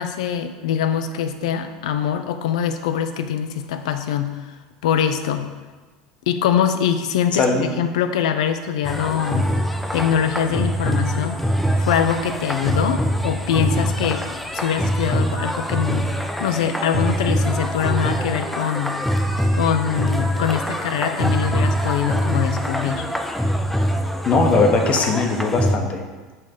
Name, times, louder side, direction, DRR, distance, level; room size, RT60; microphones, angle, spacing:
voice 1, 0.0-4.6 4.8-5.5 6.3-9.5 9.9-11.4 11.8-14.3 14.5-16.1 16.4-19.0 19.5-23.0, left 8 dB, 80° left, 8 dB, 0.4 m, -23 dB
voice 2, 7.3-7.7 24.2-26.0, left 3 dB, 40° left, 3 dB, 0.9 m, -19 dB
sound 1, 8.8-25.8, equal, 5° left, 0.5 m, -23 dB
5.6 x 3.3 x 5.1 m, 1.3 s
hypercardioid pair, 90°, 3 cm